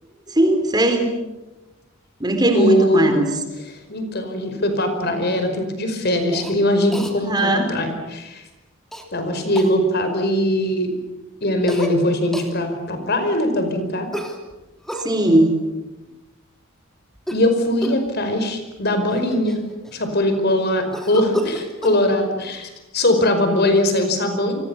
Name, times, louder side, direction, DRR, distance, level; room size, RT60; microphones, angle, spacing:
voice 1, 0.3-1.0 2.2-3.3 7.2-7.7 15.0-15.5, right 1 dB, 20° right, 6 dB, 3.8 m, -18 dB
voice 2, 2.5-3.1 3.7-8.4 9.1-10.9 11.4-14.1 17.3-19.6 19.9-24.6, left 1 dB, 50° left, 7 dB, 5.0 m, -21 dB
Cough, 6.3-6.6 6.9-7.1 8.9-9.1 9.6-9.8 11.7-12.0 12.3-12.5 14.1-15.1 17.2-17.5 17.8-18.1 18.8-18.9 19.1-20.1 20.9-22.0, equal, ahead, 3.1 m, -31 dB
29.0 x 24.5 x 7.1 m, 1.1 s
head